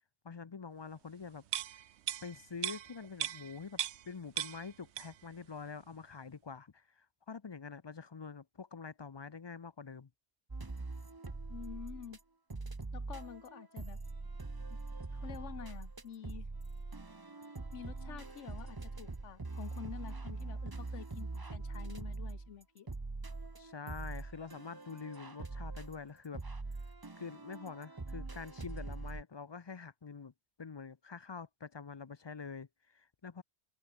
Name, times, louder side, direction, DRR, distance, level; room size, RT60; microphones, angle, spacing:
voice 1, 0.2-1.4 1.7-1.8 2.2-3.8 4.1-10.1 23.6-26.4 27.2-30.3 30.6-33.4, left 5 dB, 40° left, 0.4 m, -46 dB
sound 1, 1.5-4.1 4.4-5.3 5.7-5.8, right 12 dB, 70° right, 0.9 m, -39 dB
sound 2, 10.5-12.2 12.5-29.2, right 3 dB, 20° right, 0.9 m, -43 dB
voice 2, 11.5-12.2 12.9-14.0 14.7-14.8 15.1-16.5 17.7-22.9, left 9 dB, 80° left, 1.2 m, -48 dB
omnidirectional pair, 1.2 m